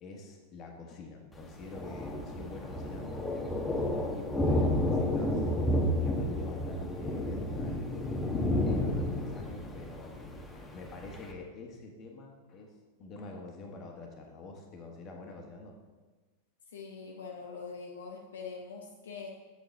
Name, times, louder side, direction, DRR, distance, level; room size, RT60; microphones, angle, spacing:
voice 1, 0.0-3.3 3.9-5.5 5.7-8.1 8.6-12.7 13.0-15.8, left 3 dB, 35° left, 2 dB, 1.5 m, -46 dB
Thunder, 1.3-11.3, left 1 dB, 10° left, 1.1 m, -31 dB
voice 2, 16.7-19.3, left 5 dB, 65° left, 0 dB, 0.8 m, -43 dB
8.0 x 7.6 x 3.4 m, 1.3 s
figure-of-eight pair, 90°, 0 cm